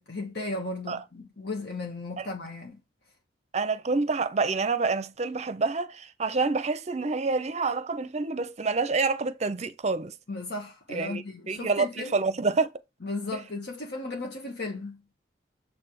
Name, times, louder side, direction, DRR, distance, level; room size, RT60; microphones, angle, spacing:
voice 1, 0.0-2.8 10.3-12.2 13.0-15.0, left 2 dB, 65° left, 1.4 m, -35 dB
voice 2, 3.5-10.1 10.9-12.7, right 4 dB, 40° right, 0.6 m, -27 dB
7.1 x 3.4 x 6.1 m
head